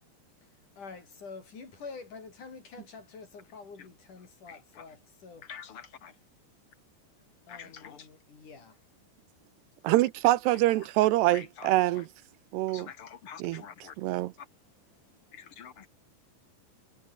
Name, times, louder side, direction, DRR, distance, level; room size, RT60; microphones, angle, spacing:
voice 1, 0.8-5.5 7.5-8.7 15.1-15.2, left 4 dB, 45° left, 6.5 m, -47 dB
voice 2, 4.5-4.9 5.4-6.1 7.5-8.1 10.7-10.9 11.3-12.0 12.7-14.0 14.4-14.5 15.3-15.9, left 8 dB, 85° left, 1.2 m, -47 dB
voice 3, 9.8-12.1 12.5-12.9 13.4-13.6 14.0-14.3, right 16 dB, 80° right, 2.8 m, -25 dB
omnidirectional pair, 5.0 m